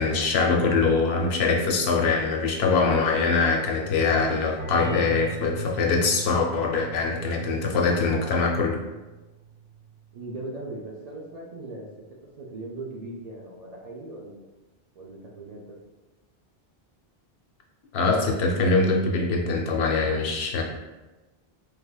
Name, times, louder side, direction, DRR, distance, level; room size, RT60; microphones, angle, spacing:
voice 1, 0.0-8.8 17.9-20.6, left 4 dB, 85° left, 1 dB, 0.9 m, -23 dB
sound 1, 4.6-10.0, right 5 dB, 75° right, 1.5 m, -39 dB
voice 2, 10.1-11.9 12.4-14.4 15.0-15.6, right 2 dB, 50° right, -3 dB, 0.5 m, -38 dB
3.5 x 3.2 x 2.2 m, 1.1 s
omnidirectional pair, 1.0 m